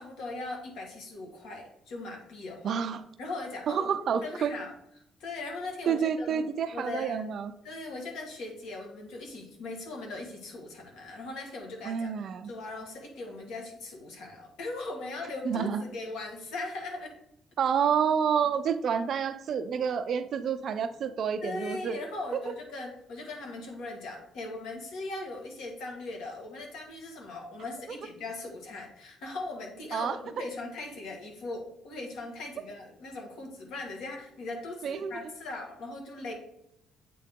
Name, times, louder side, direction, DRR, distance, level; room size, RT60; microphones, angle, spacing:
voice 1, 0.0-2.8 3.2-3.9 4.2-4.7 5.2-6.5 6.7-7.3 7.6-12.1 12.4-17.1 21.4-36.3, left 2 dB, 85° left, 1 dB, 1.6 m, -39 dB
voice 2, 2.6-3.0 3.7-4.5 5.9-7.5 11.8-12.5 15.4-15.8 17.6-22.0 29.9-30.2 34.8-35.2, right 7 dB, 45° right, 10 dB, 0.4 m, -29 dB
8.3 x 3.8 x 3.6 m, 0.79 s
cardioid pair, 165°, 0 cm